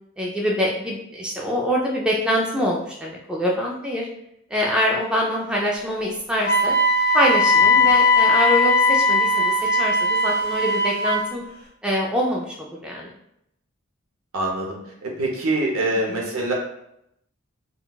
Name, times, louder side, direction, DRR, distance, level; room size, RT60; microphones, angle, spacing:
voice 1, 0.2-4.1 4.5-6.7 7.1-11.4 11.8-13.1, equal, 5° right, -3 dB, 0.3 m, -24 dB
Wind instrument woodwind instrument, 6.4-11.3, left 2 dB, 45° left, 1.3 m, -19 dB
voice 2, 14.3-16.5, right 2 dB, 70° right, -1 dB, 0.8 m, -25 dB
3.7 x 2.3 x 2.3 m, 0.78 s
head